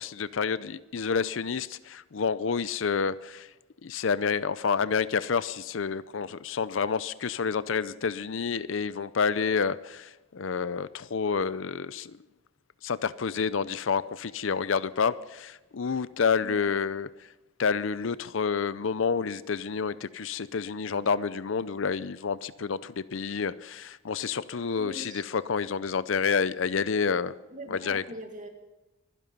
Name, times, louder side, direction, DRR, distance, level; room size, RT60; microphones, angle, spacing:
voice 1, 0.0-3.5 3.8-12.2 12.8-17.1 17.6-27.3 27.7-28.0, left 5 dB, 70° left, 17 dB, 0.5 m, -29 dB
voice 2, 24.8-25.2 27.5-28.5, right 1 dB, 40° right, 4 dB, 2.1 m, -42 dB
24.5 x 11.0 x 5.4 m, 1.0 s
head